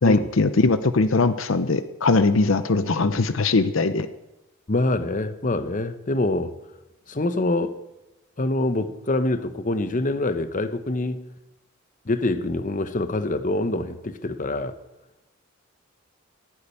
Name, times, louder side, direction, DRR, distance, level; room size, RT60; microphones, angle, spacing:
voice 1, 0.0-4.1, left 3 dB, 70° left, 12 dB, 0.7 m, -20 dB
voice 2, 4.7-6.5 7.1-7.8 8.4-11.2 12.1-14.7, left 2 dB, 40° left, 11 dB, 0.9 m, -25 dB
16.0 x 8.7 x 9.8 m, 1.0 s
head